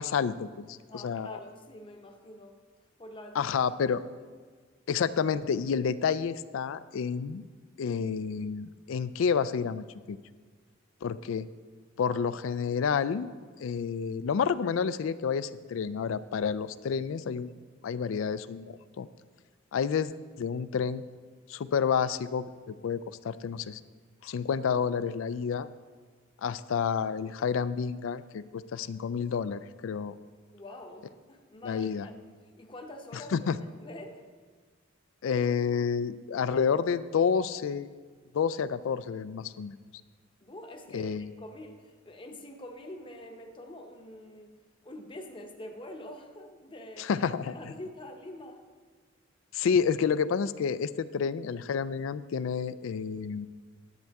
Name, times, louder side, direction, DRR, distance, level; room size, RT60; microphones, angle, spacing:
voice 1, 0.0-1.4 3.4-4.0 4.9-7.4 7.8-10.2 11.0-11.5 12.0-13.3 13.6-17.5 17.8-19.1 19.7-20.1 20.4-21.0 21.5-23.0 23.2-23.8 24.2-25.7 26.4-30.1 31.6-32.1 33.3-33.6 35.2-37.9 38.3-39.8 40.9-41.2 47.0-47.5 49.5-53.5, left 6 dB, 80° left, 16 dB, 0.4 m, -29 dB
voice 2, 0.9-2.6 3.0-3.5 30.5-32.2 32.6-34.2 40.4-44.5 44.8-47.1 47.5-48.7, left 1 dB, 25° left, 3 dB, 0.8 m, -45 dB
10.5 x 8.1 x 3.5 m, 1.5 s
head